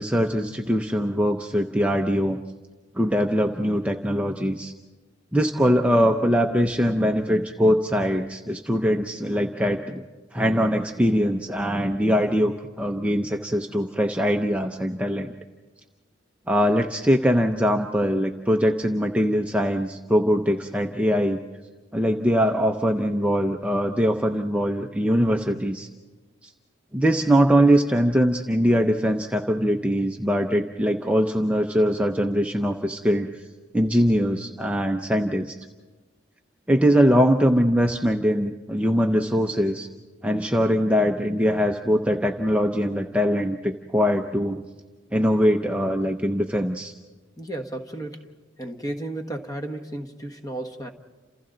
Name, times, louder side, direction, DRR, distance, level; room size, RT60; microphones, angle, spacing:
voice 1, 0.0-2.4 2.9-4.7 5.3-10.0 10.3-12.5 12.8-15.3 16.5-21.4 21.9-25.9 26.4-26.5 26.9-33.4 33.7-35.6 36.7-39.9 40.2-44.6 45.1-46.9, equal, 5° right, 3 dB, 0.6 m, -22 dB
voice 2, 47.4-48.3 48.6-50.9, right 1 dB, 20° left, 5 dB, 1.4 m, -33 dB
30.0 x 27.5 x 3.9 m, 1.3 s
head